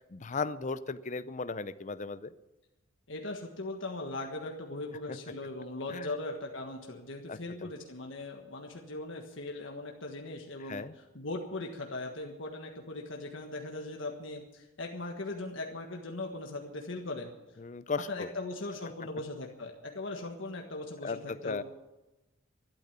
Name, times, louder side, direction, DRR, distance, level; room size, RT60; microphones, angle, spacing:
voice 1, 0.1-2.3 5.1-5.2 5.9-6.1 7.3-7.4 10.7-10.9 17.6-18.3 21.0-21.6, left 4 dB, 35° left, 15 dB, 0.5 m, -36 dB
voice 2, 3.1-17.3 18.1-21.6, left 2 dB, 65° left, 2 dB, 1.5 m, -39 dB
12.5 x 12.0 x 8.8 m, 1.0 s
head